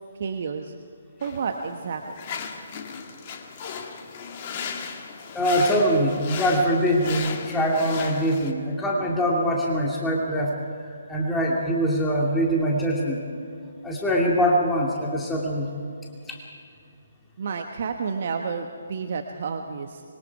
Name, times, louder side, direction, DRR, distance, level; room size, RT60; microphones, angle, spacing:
voice 1, 0.2-0.7 1.2-2.0 17.4-20.0, right 5 dB, 50° right, 5 dB, 1.2 m, -30 dB
sound 1, 1.2-8.5, left 6 dB, 35° left, 1.9 m, -36 dB
voice 2, 5.3-10.5 10.8-13.2 13.8-15.7 16.3-16.4, equal, 5° left, -3 dB, 2.5 m, -23 dB
25.0 x 23.0 x 4.8 m, 2.3 s
figure-of-eight pair, 140°, 0 cm